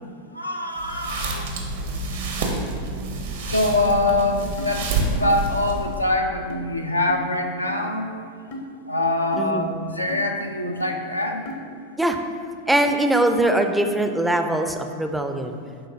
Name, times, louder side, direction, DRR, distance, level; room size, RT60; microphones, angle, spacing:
voice 1, 0.3-1.5 3.5-8.1 8.9-11.5, left 2 dB, 85° left, 3 dB, 0.4 m, -24 dB
sound 1, 0.7-6.0, right 3 dB, 60° right, 0.8 m, -28 dB
sound 2, 4.6-4.7 5.2-5.4 5.8-5.9 6.5-6.6 7.1-7.2 7.7-7.8 8.5-8.7 9.3-9.5 10.1-10.2 10.8-10.9 11.4-11.6, left 1 dB, 50° left, 0.7 m, -35 dB
voice 2, 12.7-15.6, right 1 dB, 5° right, 6 dB, 0.4 m, -21 dB
10.0 x 3.8 x 2.7 m, 2.2 s
figure-of-eight pair, 90°, 0 cm